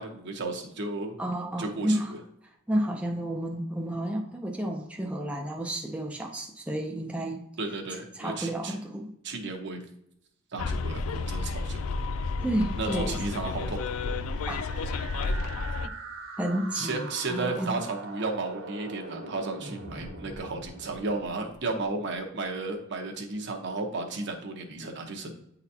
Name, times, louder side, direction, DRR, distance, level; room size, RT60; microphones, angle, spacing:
voice 1, 0.0-1.1 1.6-2.2 7.6-8.7 9.2-9.8 10.5-12.0 12.8-14.1 16.7-25.4, right 3 dB, 60° right, 3 dB, 1.0 m, -34 dB
voice 2, 1.2-2.1 2.7-7.4 8.1-9.1 12.4-13.2 14.5-14.7 16.4-17.7, right 1 dB, 5° right, 1 dB, 0.4 m, -31 dB
Bus, 10.6-15.9, left 3 dB, 80° left, 0.4 m, -31 dB
sound 1, 14.3-22.2, right 3 dB, 75° right, 1.4 m, -43 dB
8.8 x 4.0 x 2.8 m, 0.74 s
head